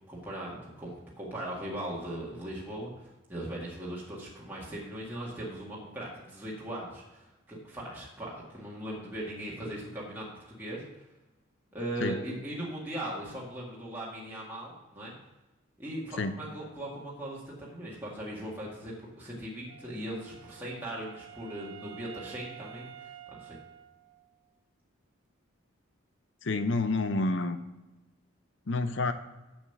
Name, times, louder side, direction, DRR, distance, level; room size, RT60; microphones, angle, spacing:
voice 1, 0.1-10.9 11.7-15.1 15.8-23.6, right 1 dB, 10° right, -6 dB, 1.8 m, -39 dB
Wind instrument woodwind instrument, 19.7-24.5, right 11 dB, 80° right, 0.7 m, -49 dB
voice 2, 26.4-27.6 28.7-29.1, left 3 dB, 60° left, 10 dB, 0.7 m, -28 dB
7.2 x 7.2 x 5.9 m, 1.0 s
head